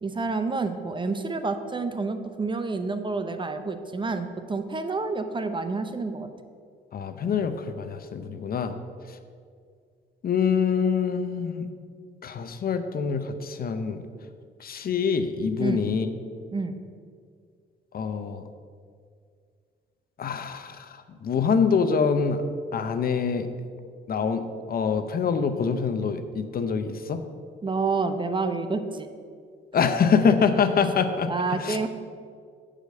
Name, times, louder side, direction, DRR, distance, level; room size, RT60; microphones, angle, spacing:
voice 1, 0.0-6.3 15.6-15.8 16.5-16.8 27.6-29.1 31.3-31.9, right 3 dB, 25° right, 8 dB, 0.6 m, -28 dB
voice 2, 6.9-8.7 10.2-11.7 12.2-14.0 14.6-16.1 17.9-18.5 20.2-20.9 21.2-22.4 22.7-23.5 24.1-27.2 29.7-31.8, left 6 dB, 50° left, 9 dB, 0.6 m, -25 dB
7.9 x 5.0 x 6.5 m, 2.1 s
cardioid pair, 90°, 20 cm